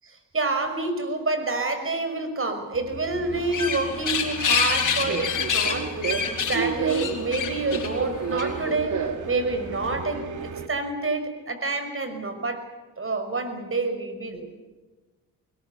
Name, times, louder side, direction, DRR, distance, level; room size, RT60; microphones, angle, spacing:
voice 1, 0.0-6.1 6.5-9.0 9.3-12.7 13.0-14.5, right 3 dB, 40° right, 7 dB, 5.7 m, -28 dB
Subway metro underground, 2.7-10.7, right 5 dB, 60° right, 2.4 m, -32 dB
sound 1, 3.3-8.7, left 6 dB, 65° left, 4.6 m, -27 dB
21.0 x 20.5 x 8.2 m, 1.2 s
supercardioid pair, 55°, 34 cm